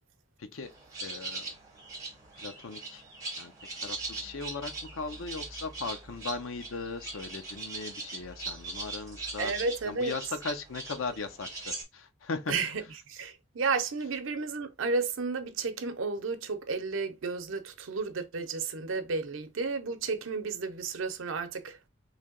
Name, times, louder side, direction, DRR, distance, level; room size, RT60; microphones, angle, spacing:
voice 1, 0.4-0.7 1.0-1.5 2.4-3.0 3.4-3.5 3.8-9.5 9.8-12.5, left 4 dB, 90° left, 0.7 m, -38 dB
sound 1, 0.6-11.8, right 3 dB, 15° right, 1.1 m, -41 dB
voice 2, 9.4-10.1 12.5-21.8, right 4 dB, 80° right, 0.6 m, -32 dB
3.3 x 2.8 x 3.8 m
head